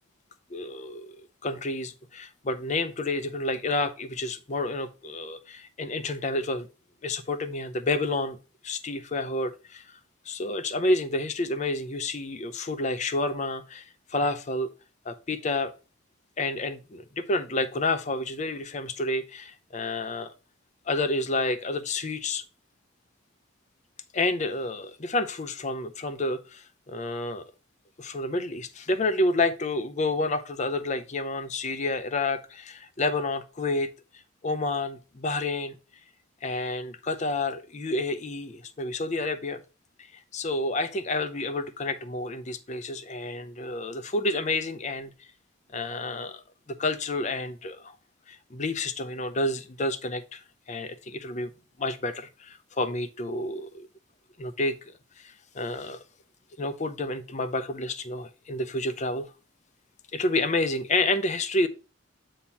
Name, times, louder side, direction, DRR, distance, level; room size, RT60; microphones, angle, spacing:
voice 1, 0.5-6.7 7.0-8.4 8.6-10.0 10.3-14.7 15.1-15.7 16.4-20.3 20.9-22.4 24.1-27.4 28.0-33.9 34.4-35.8 36.4-39.6 40.0-40.1 40.3-45.1 45.7-46.4 46.7-47.9 48.3-50.4 50.7-51.5 51.8-53.9 54.4-54.8 55.2-56.0 56.6-59.3 60.1-61.7, left 2 dB, 35° left, 0.6 m, -29 dB
8.3 x 2.9 x 5.7 m
head